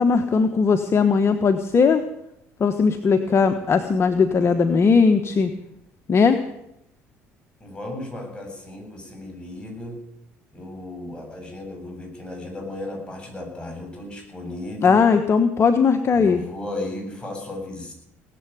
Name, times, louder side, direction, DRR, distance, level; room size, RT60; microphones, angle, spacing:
voice 1, 0.0-2.0 2.6-5.5 6.1-6.4 14.8-16.4, left 5 dB, 40° left, 8 dB, 1.2 m, -18 dB
voice 2, 7.6-10.0 10.5-15.0 16.1-17.9, left 2 dB, 15° left, 2 dB, 7.9 m, -35 dB
18.5 x 7.9 x 9.2 m, 0.81 s
hypercardioid pair, 60°, 7 cm